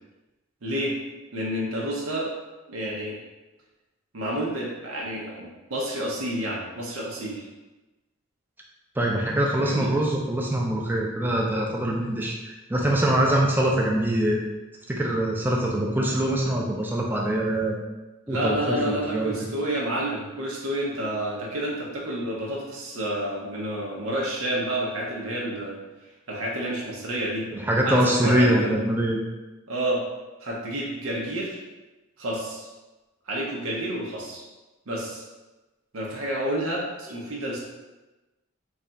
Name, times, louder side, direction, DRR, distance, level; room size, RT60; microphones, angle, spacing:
voice 1, 0.6-1.0 1.3-2.3 2.7-3.2 4.1-7.5 9.6-9.9 18.3-25.8 26.3-27.4 27.9-28.8 29.7-30.0 30.4-31.6 32.2-32.7 33.3-34.4 34.9-35.2 35.9-37.6, right 1 dB, 80° right, -3 dB, 0.7 m, -29 dB
voice 2, 9.0-14.4 14.9-17.8 18.3-19.3 27.5-29.2, right 1 dB, 10° right, -2 dB, 0.4 m, -24 dB
3.2 x 2.4 x 3.9 m, 1.1 s
head